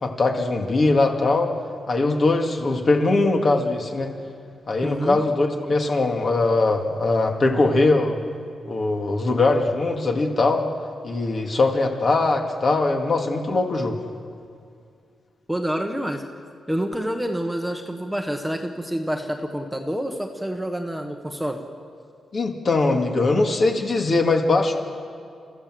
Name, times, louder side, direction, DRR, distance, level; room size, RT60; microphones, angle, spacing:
voice 1, 0.0-1.5 1.9-4.1 4.7-8.2 8.7-10.6 11.0-14.0 22.3-24.8, left 3 dB, 40° left, 3 dB, 2.3 m, -21 dB
voice 2, 4.8-5.2 15.5-16.2 16.7-21.6, equal, 5° right, 4 dB, 1.4 m, -27 dB
30.0 x 14.5 x 7.8 m, 2.3 s
wide cardioid pair, 135°, 0 cm